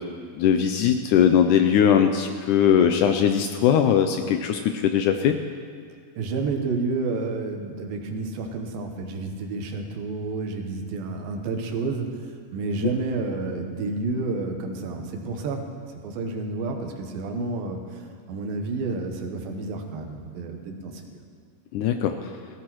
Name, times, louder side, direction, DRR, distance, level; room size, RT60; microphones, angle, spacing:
voice 1, 0.4-5.4 21.7-22.3, left 8 dB, 80° left, 6 dB, 1.8 m, -20 dB
voice 2, 6.2-15.6 16.0-21.2, right 3 dB, 90° right, 4 dB, 2.8 m, -30 dB
18.0 x 14.5 x 3.1 m, 2.2 s
omnidirectional pair, 4.0 m